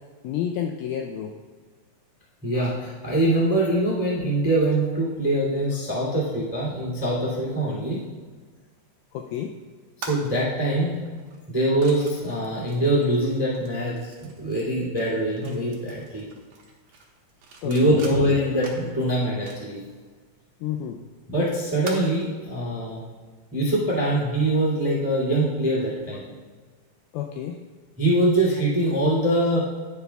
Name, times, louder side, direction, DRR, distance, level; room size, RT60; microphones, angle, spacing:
voice 1, 0.2-1.3 9.1-9.5 17.6-18.1 20.6-21.0 27.1-27.6, left 9 dB, 85° left, 3 dB, 2.2 m, -30 dB
voice 2, 2.4-8.0 10.0-11.0 11.5-16.2 17.6-19.8 21.3-23.0 23.5-26.3 28.0-29.7, right 1 dB, 15° right, -5 dB, 0.7 m, -23 dB
sound 1, 10.0-22.5, right 4 dB, 65° right, 1.6 m, -45 dB
10.5 x 9.5 x 2.3 m, 1.5 s
omnidirectional pair, 4.8 m